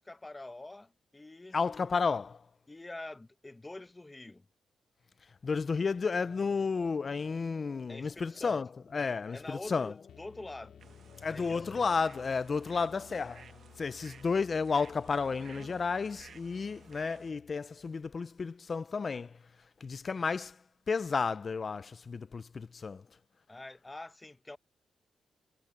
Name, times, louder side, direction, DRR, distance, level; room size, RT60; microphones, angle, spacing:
voice 1, 0.0-1.6 2.7-4.5 7.9-8.6 9.3-10.8 11.3-11.8 23.5-24.6, left 2 dB, 15° left, 0.9 m, -46 dB
voice 2, 1.5-2.4 5.4-9.9 11.2-13.5 13.8-19.3 19.8-20.6 20.9-23.0, left 5 dB, 30° left, 0.4 m, -32 dB
sound 1, 6.0-11.9, left 7 dB, 50° left, 5.0 m, -57 dB
sound 2, 10.1-17.8, left 9 dB, 80° left, 2.3 m, -57 dB
sound 3, 10.8-17.3, right 7 dB, 55° right, 0.9 m, -55 dB
wide cardioid pair, 145°, 0 cm